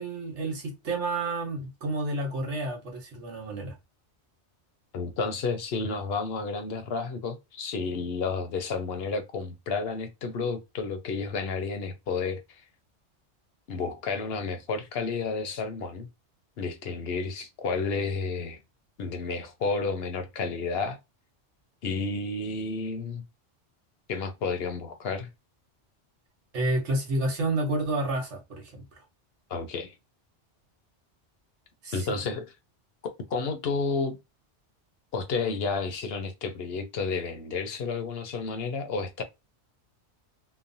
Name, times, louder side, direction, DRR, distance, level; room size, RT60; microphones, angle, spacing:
voice 1, 0.0-3.7 26.5-28.8 31.8-32.2, right 2 dB, 85° right, 1.3 m, -30 dB
voice 2, 4.9-12.6 13.7-16.1 16.6-18.6 19.0-21.0 21.8-23.2 24.1-25.3 29.5-29.9 31.9-32.5 33.3-34.2 35.1-39.2, left 4 dB, 65° left, 0.8 m, -31 dB
3.0 x 2.1 x 2.5 m
omnidirectional pair, 1.2 m